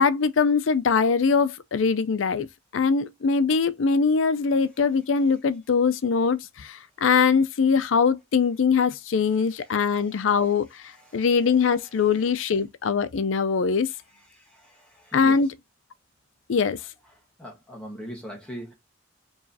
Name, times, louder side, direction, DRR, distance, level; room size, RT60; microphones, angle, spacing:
voice 1, 0.0-2.5 2.7-10.8 11.1-13.9 15.1-15.5 16.5-16.8, left 5 dB, 80° left, 0.5 m, -22 dB
voice 2, 14.5-15.4 17.4-18.7, equal, 5° left, 1.3 m, -40 dB
4.7 x 3.1 x 2.7 m
head